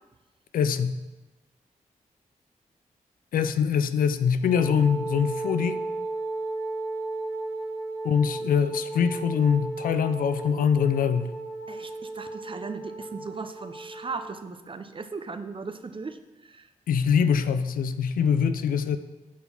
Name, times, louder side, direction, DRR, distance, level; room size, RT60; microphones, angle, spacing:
voice 1, 0.5-1.0 3.3-5.9 8.0-11.3 16.9-19.0, left 7 dB, 80° left, 11 dB, 0.4 m, -24 dB
Wind instrument woodwind instrument, 4.4-14.4, right 2 dB, 65° left, 1.0 m, -34 dB
voice 2, 11.7-16.7, right 4 dB, 35° right, 9 dB, 0.6 m, -38 dB
5.9 x 3.8 x 5.9 m, 1.1 s
cardioid pair, 45°, 14 cm